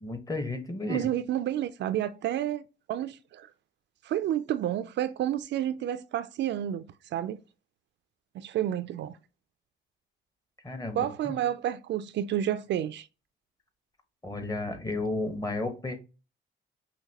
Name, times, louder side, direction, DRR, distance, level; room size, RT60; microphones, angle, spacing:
voice 1, 0.0-1.1 10.6-11.4 14.2-16.0, left 2 dB, 20° left, 1.1 m, -33 dB
voice 2, 0.9-2.6 2.9-3.5 4.0-6.8 7.1-7.4 8.3-9.1 10.9-13.1, right 11 dB, 65° right, 0.4 m, -30 dB
5.7 x 2.6 x 2.8 m
cardioid pair, 90°, 20 cm